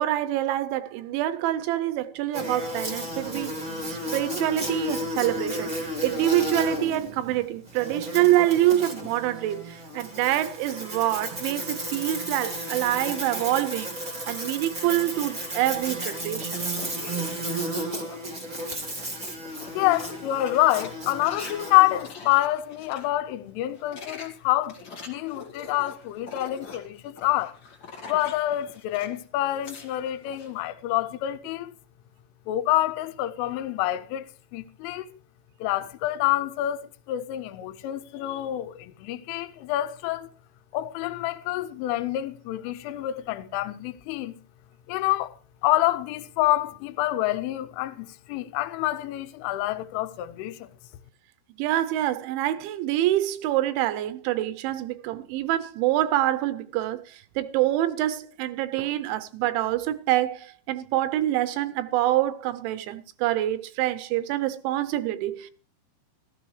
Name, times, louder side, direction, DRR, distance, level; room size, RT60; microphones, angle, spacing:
voice 1, 0.0-3.5 3.9-5.7 6.0-13.9 14.3-16.6 51.6-65.5, right 14 dB, 80° right, 2.9 m, -26 dB
Buzz, 2.3-22.1, equal, 40° right, 0.6 m, -33 dB
sound 1, 16.0-18.3 18.7-23.1 23.6-29.2 29.4-30.5, left 4 dB, 55° left, 1.2 m, -44 dB
voice 2, 19.5-27.5 28.1-31.7 32.5-34.3 34.5-35.2 35.6-40.3 40.7-44.4 44.9-45.4 45.6-50.7, left 15 dB, 90° left, 3.2 m, -27 dB
15.0 x 13.5 x 3.2 m
omnidirectional pair, 5.5 m